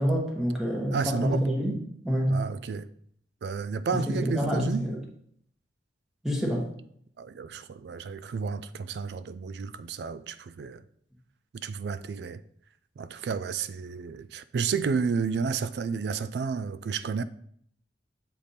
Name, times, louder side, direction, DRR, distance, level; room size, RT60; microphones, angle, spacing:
voice 1, 0.0-1.8 2.0-2.4 3.9-5.0 6.2-6.7, equal, ahead, 1.0 m, -27 dB
voice 2, 0.9-1.5 2.3-2.9 3.4-4.8 7.2-10.8 11.5-12.4 13.0-17.2, right 5 dB, 65° right, 0.3 m, -31 dB
7.4 x 3.4 x 4.2 m
head